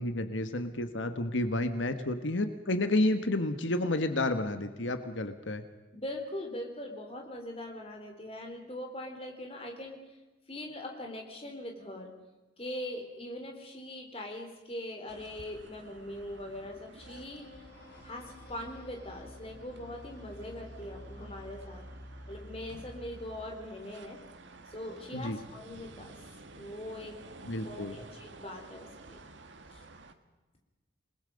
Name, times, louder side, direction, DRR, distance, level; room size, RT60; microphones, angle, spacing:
voice 1, 0.0-5.6 25.1-25.4 27.4-28.0, left 1 dB, 90° left, 9 dB, 1.4 m, -30 dB
voice 2, 5.9-10.0 10.5-12.1 12.6-17.5 18.0-21.9 22.3-24.2 24.7-26.2 26.6-27.2 27.6-29.2 29.7-29.8, left 1 dB, 30° left, 3 dB, 3.6 m, -41 dB
sound 1, 15.1-30.1, right 2 dB, 80° right, 1.7 m, -53 dB
sound 2, 17.0-23.5, left 1 dB, 55° left, 5.5 m, -49 dB
28.5 x 20.0 x 5.3 m, 1.2 s
head